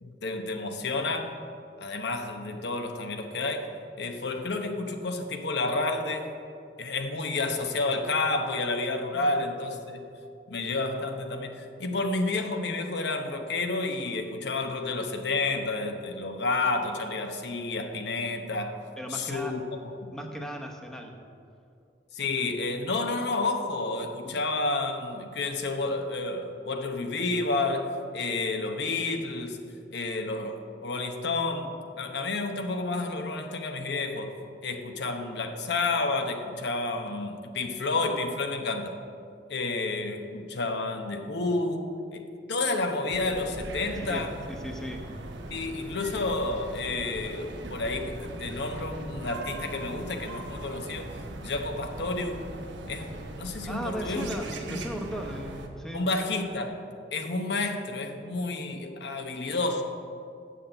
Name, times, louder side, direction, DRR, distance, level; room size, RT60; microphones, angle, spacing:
voice 1, 0.0-1.3 1.8-3.7 4.0-6.3 6.8-10.0 10.5-18.8 19.1-19.6 20.0-20.1 22.1-29.6 29.9-39.0 39.5-44.3 45.5-51.1 51.4-52.4 52.9-54.3 54.7-54.8 55.9-56.8 57.1-59.8, left 3 dB, 70° left, 5 dB, 0.9 m, -30 dB
voice 2, 9.1-9.4 19.0-19.5 20.1-21.2 22.2-22.5 24.2-24.4 44.0-45.1 53.7-56.1, equal, 5° left, 2 dB, 0.9 m, -37 dB
sound 1, 43.1-55.7, right 1 dB, 85° right, 1.0 m, -40 dB
7.7 x 6.4 x 7.9 m, 2.4 s
head